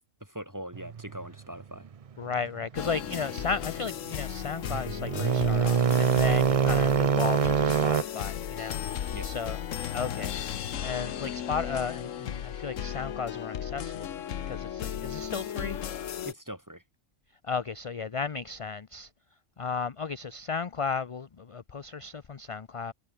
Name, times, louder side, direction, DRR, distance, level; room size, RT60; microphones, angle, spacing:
voice 1, 0.2-1.9 9.1-9.4 16.2-16.8, right 1 dB, 15° right, 4.3 m, -41 dB
sound 1, 0.7-1.3 1.8-1.9 2.5-2.6 2.9-3.4 3.9-4.0 4.4-8.0, right 7 dB, 45° right, 0.4 m, -24 dB
voice 2, 2.2-9.6 9.9-10.3 10.8-14.1 14.5-15.8 17.4-19.1 19.6-22.9, left 5 dB, 35° left, 0.5 m, -34 dB
sound 2, 2.8-16.3, left 9 dB, 75° left, 1.3 m, -35 dB
omnidirectional pair, 1.3 m